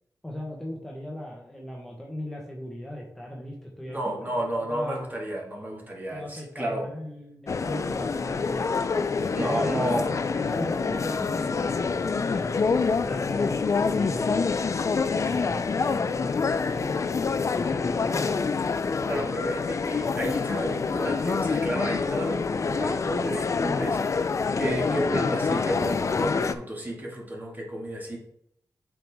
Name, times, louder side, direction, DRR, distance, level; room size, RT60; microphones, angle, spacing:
voice 1, 0.2-5.0 6.1-9.1 9.4-12.6 13.1-13.6 13.9-14.6 15.1-17.0 17.5-18.3, left 1 dB, 5° left, -3 dB, 1.2 m, -38 dB
voice 2, 3.9-6.9 9.3-10.1 19.0-28.2, right 1 dB, 25° right, -2 dB, 2.0 m, -31 dB
sound 1, 7.5-26.5, left 5 dB, 50° left, 0.4 m, -26 dB
7.8 x 4.7 x 3.6 m, 0.73 s
wide cardioid pair, 90°, 7 cm